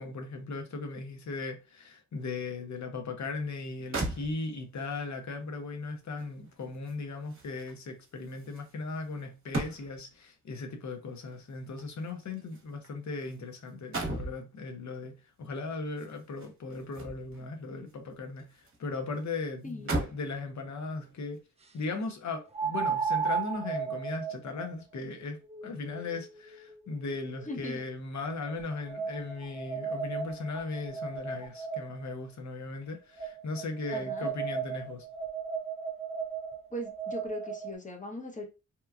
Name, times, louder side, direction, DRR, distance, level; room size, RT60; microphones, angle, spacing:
voice 1, 0.0-21.4 21.7-35.1, left 3 dB, 60° left, 0.7 m, -38 dB
sound 1, 3.6-3.7 3.9-4.8 6.2-10.2 11.3-13.4 13.7-14.4 15.9-17.5 17.9-18.8 19.1-19.2 19.7-20.3 21.0-21.2, right 2 dB, 40° right, 0.9 m, -38 dB
voice 2, 19.6-20.0 27.5-27.8 33.9-34.3 36.7-38.5, left 1 dB, 25° left, 0.8 m, -39 dB
sound 2, 22.5-27.7 28.4-32.1 33.2-37.8, right 6 dB, 20° right, 0.4 m, -36 dB
2.9 x 2.2 x 2.3 m
cardioid pair, 75°, 32 cm